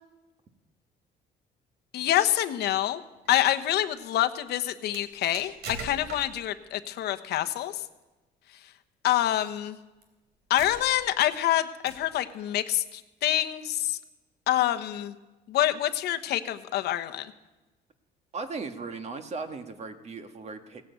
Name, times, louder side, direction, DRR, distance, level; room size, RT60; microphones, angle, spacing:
voice 1, 1.9-3.0 3.3-5.5 5.8-7.7 9.0-9.8 10.5-14.0 14.5-15.1 15.5-17.3, left 13 dB, 75° left, 9 dB, 1.1 m, -26 dB
sound 1, 3.1-3.5 4.9-6.5 7.8-8.0 9.3-9.4 10.0-10.1 10.6-11.1 11.9-12.2, right 3 dB, 85° right, 3.3 m, -41 dB
voice 2, 18.3-20.8, right 4 dB, 40° right, 6 dB, 1.7 m, -37 dB
17.5 x 10.0 x 8.2 m, 1.1 s
cardioid pair, 110°, 17 cm